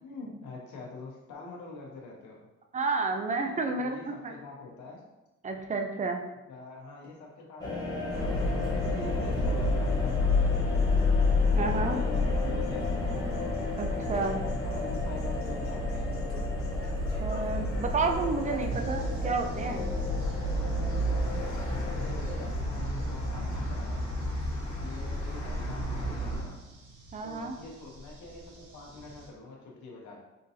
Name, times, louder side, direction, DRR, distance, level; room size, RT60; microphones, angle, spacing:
voice 1, 0.0-2.5 3.4-5.0 6.5-8.4 8.8-11.0 11.4-13.2 14.6-16.1 21.8-24.0 24.8-26.7 27.2-30.2, left 3 dB, 80° left, -2 dB, 0.9 m, -45 dB
voice 2, 2.7-4.3 5.4-6.2 11.5-12.0 13.8-14.4 17.2-19.9 27.1-27.6, right 4 dB, 25° right, 4 dB, 0.4 m, -31 dB
sound 1, 7.6-22.5, left 3 dB, 15° left, 0.7 m, -36 dB
sound 2, 8.1-26.4, left 2 dB, 30° left, 1.3 m, -30 dB
sound 3, 18.7-29.3, right 2 dB, 75° right, 0.8 m, -45 dB
3.8 x 2.6 x 2.7 m, 1.0 s
cardioid pair, 90°, 30 cm